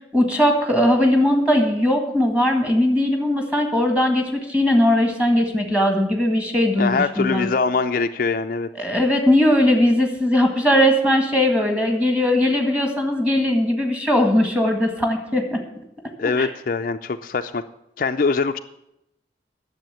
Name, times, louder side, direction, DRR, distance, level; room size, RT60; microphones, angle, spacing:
voice 1, 0.1-7.5 8.8-15.6 16.4-16.5, left 1 dB, 5° right, 4 dB, 1.7 m, -19 dB
voice 2, 6.8-8.7 16.2-17.6 18.0-18.6, left 4 dB, 50° left, 7 dB, 0.4 m, -23 dB
10.5 x 7.2 x 9.2 m, 0.85 s
head